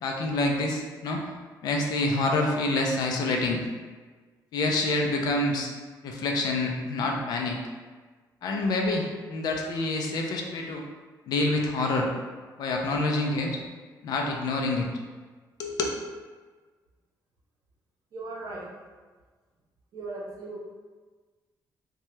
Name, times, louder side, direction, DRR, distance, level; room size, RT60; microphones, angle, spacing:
voice 1, 0.0-1.2 1.6-3.6 4.5-5.7 6.0-7.6 8.4-10.8 11.3-12.1 12.6-13.6 14.0-14.9 15.6-15.8, left 2 dB, 60° left, 1 dB, 0.4 m, -27 dB
voice 2, 18.1-18.7 19.9-20.6, right 2 dB, 55° right, -3 dB, 0.6 m, -37 dB
2.8 x 2.2 x 3.1 m, 1.4 s
cardioid pair, 170°, 7 cm